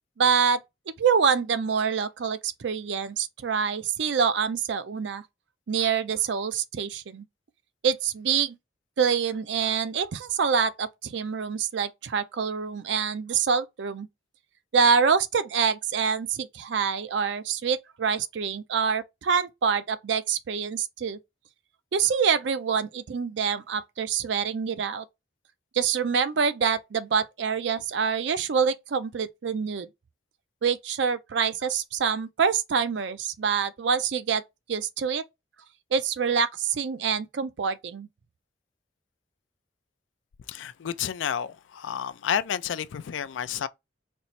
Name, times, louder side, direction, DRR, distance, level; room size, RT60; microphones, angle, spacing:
voice 1, 0.2-0.6 1.0-5.2 5.7-7.2 7.8-8.6 9.0-14.1 14.7-21.2 21.9-25.0 25.7-29.9 30.6-34.4 34.7-35.2 35.9-38.1, right 6 dB, 75° right, 0.4 m, -26 dB
voice 2, 40.5-43.7, left 8 dB, 90° left, 0.4 m, -30 dB
4.3 x 2.0 x 4.0 m
head